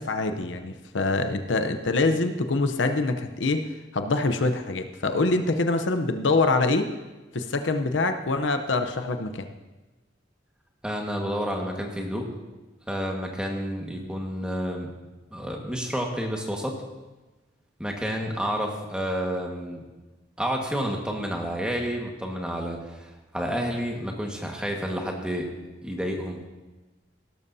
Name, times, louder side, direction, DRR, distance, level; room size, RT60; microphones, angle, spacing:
voice 1, 0.0-3.6 3.9-6.9 7.3-9.5, left 3 dB, 80° left, 7 dB, 0.8 m, -25 dB
voice 2, 10.8-12.3 12.9-14.9 15.3-16.7 17.8-19.8 20.4-25.5 25.8-26.4, equal, 5° right, 0 dB, 1.6 m, -30 dB
17.5 x 12.5 x 2.8 m, 1.1 s
head